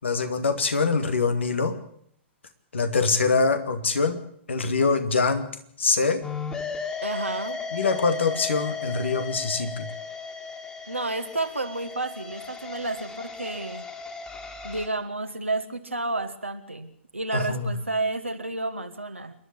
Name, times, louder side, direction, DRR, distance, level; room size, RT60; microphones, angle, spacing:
voice 1, 0.0-1.8 2.7-4.2 4.5-5.5 5.8-6.2 7.7-9.9 17.3-17.7, left 4 dB, 70° left, 8 dB, 2.5 m, -24 dB
sound 1, 6.2-14.9, left 5 dB, 15° left, 2.8 m, -35 dB
voice 2, 7.0-7.6 10.9-13.8 14.6-19.3, right 2 dB, 85° right, 5 dB, 1.5 m, -31 dB
27.5 x 11.5 x 8.4 m, 0.68 s
figure-of-eight pair, 105°, 7 cm